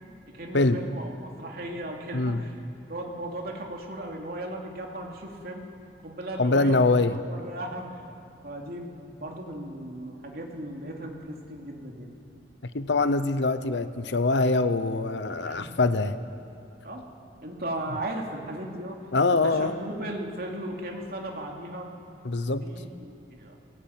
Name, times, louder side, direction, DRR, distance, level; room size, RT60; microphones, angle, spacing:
voice 1, 0.3-2.5 2.9-5.7 6.0-6.8 7.3-8.0 8.4-12.1 15.5-15.7 16.8-17.1 17.4-19.0 19.3-21.9 22.6-23.6, right 1 dB, 60° right, 0 dB, 2.8 m, -36 dB
voice 2, 2.1-2.4 6.4-7.2 12.7-16.2 19.1-19.7 22.2-22.6, left 3 dB, 85° left, 12 dB, 0.8 m, -23 dB
21.0 x 17.5 x 9.0 m, 2.9 s
head